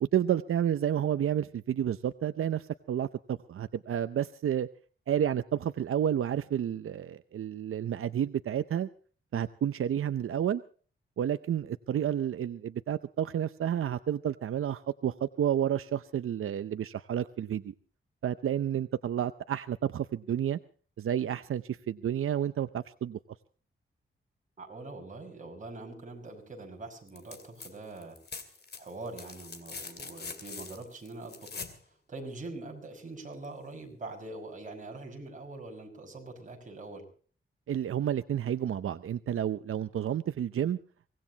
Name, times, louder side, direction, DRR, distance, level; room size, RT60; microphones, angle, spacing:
voice 1, 0.0-4.7 5.1-8.9 9.3-10.6 11.2-17.7 18.2-20.6 21.0-23.2 37.7-40.8, right 10 dB, 85° right, 12 dB, 0.7 m, -30 dB
voice 2, 24.6-28.2 28.7-31.6 32.1-37.1, right 2 dB, 35° right, 2 dB, 5.7 m, -43 dB
sound 1, 27.1-27.7 28.0-31.8 33.4-33.5, left 5 dB, 50° left, 2.5 m, -43 dB
24.0 x 18.5 x 2.9 m, 0.42 s
wide cardioid pair, 140°, 21 cm